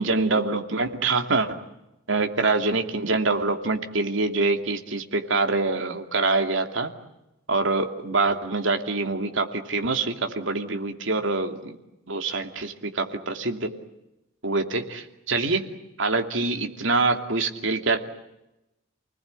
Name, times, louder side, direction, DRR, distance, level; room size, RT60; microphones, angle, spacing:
voice 1, 0.0-1.6 2.1-6.9 7.5-11.8 12.1-13.7 14.4-15.6 16.0-18.0, right 3 dB, 70° right, 5 dB, 2.7 m, -25 dB
29.5 x 20.0 x 9.5 m, 0.95 s
head